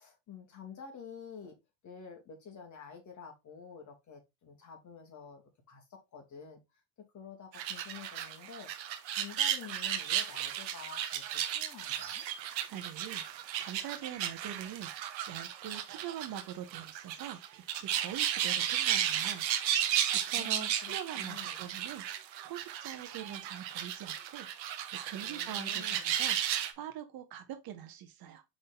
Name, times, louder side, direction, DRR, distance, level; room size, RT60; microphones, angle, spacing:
voice 1, 0.0-1.6 1.8-5.4 5.7-6.6 7.1-8.7 9.1-11.2 11.5-12.2 20.3-21.6 25.2-26.1, left 7 dB, 35° left, 2.4 m, -49 dB
sound 1, 7.5-26.7, right 11 dB, 85° right, 1.3 m, -34 dB
voice 2, 12.4-22.0 22.4-24.8 25.0-28.4, right 10 dB, 45° right, 1.3 m, -44 dB
6.0 x 4.0 x 4.0 m
hypercardioid pair, 95°, 50 cm